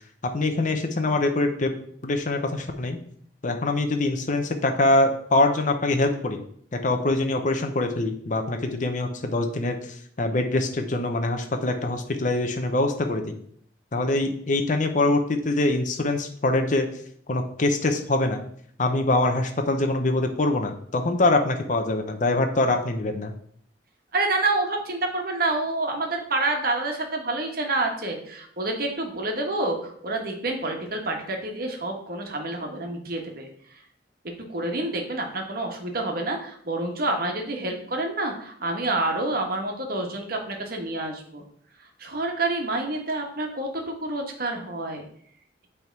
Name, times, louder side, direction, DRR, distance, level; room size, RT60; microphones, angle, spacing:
voice 1, 0.3-1.7 2.0-3.0 3.4-6.4 6.8-13.3 13.9-16.9 17.3-18.4 18.8-23.3, left 2 dB, 45° left, 5 dB, 0.8 m, -24 dB
voice 2, 24.1-33.5 34.5-41.4 42.0-45.0, right 2 dB, 55° right, 2 dB, 1.4 m, -28 dB
8.2 x 3.6 x 4.6 m, 0.63 s
head